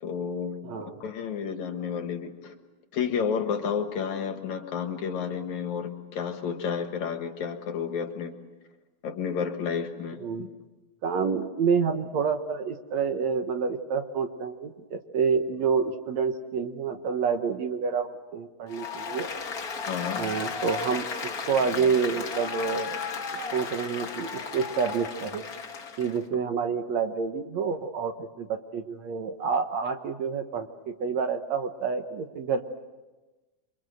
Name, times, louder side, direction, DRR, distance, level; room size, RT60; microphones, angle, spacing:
voice 1, 0.0-2.5 2.9-8.4 9.0-10.5 19.9-20.2, left 6 dB, 60° left, 6 dB, 2.7 m, -31 dB
voice 2, 0.6-1.0 10.2-10.5 11.0-19.3 20.2-23.0 23.5-25.5 26.0-32.6, right 5 dB, 60° right, 6 dB, 2.2 m, -28 dB
Applause, 18.7-26.2, left 5 dB, 40° left, 1.3 m, -34 dB
28.0 x 24.0 x 7.9 m, 1.2 s
omnidirectional pair, 3.9 m